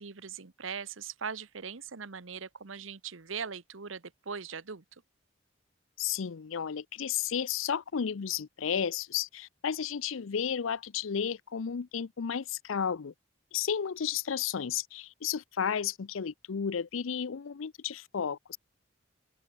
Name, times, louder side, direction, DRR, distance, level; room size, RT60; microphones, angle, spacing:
voice 1, 0.0-5.0, right 6 dB, 75° right, 1.1 m, -40 dB
voice 2, 6.0-13.1 13.5-18.6, left 7 dB, 80° left, 0.5 m, -33 dB
open air
head